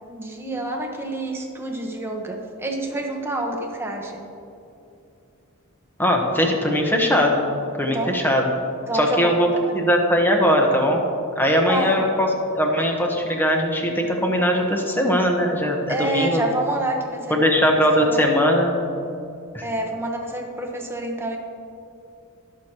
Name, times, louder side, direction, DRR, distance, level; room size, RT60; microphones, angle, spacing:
voice 1, 0.0-4.2 7.8-8.1 8.9-9.7 11.7-12.0 15.9-17.7 18.0-18.3 19.6-21.4, right 2 dB, 10° right, 1 dB, 1.0 m, -28 dB
voice 2, 6.0-7.5 7.8-8.5 8.9-9.5 9.7-11.1 11.4-12.3 12.5-16.4 17.3-18.9 19.5-19.6, equal, 10° left, 1 dB, 1.1 m, -20 dB
18.5 x 6.3 x 2.9 m, 2.7 s
head